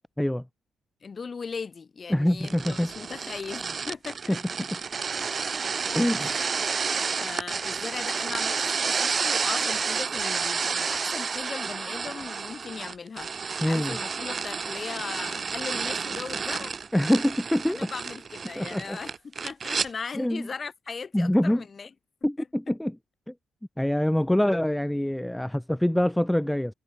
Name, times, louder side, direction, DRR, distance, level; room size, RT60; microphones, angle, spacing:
voice 1, 1.0-4.7 6.2-6.5 7.2-16.7 17.7-21.9 22.4-22.5, left 5 dB, 35° left, 7.3 m, -38 dB
voice 2, 2.1-2.9 4.3-4.4 5.9-6.5 13.6-14.0 16.9-17.9 18.6-19.0 20.2-20.5 21.1-21.6 22.2-23.0 23.3-23.4 23.8-26.7, left 1 dB, 5° left, 0.8 m, -25 dB
sound 1, 2.4-19.9, right 5 dB, 40° right, 1.3 m, -30 dB
cardioid pair, 90°, 0 cm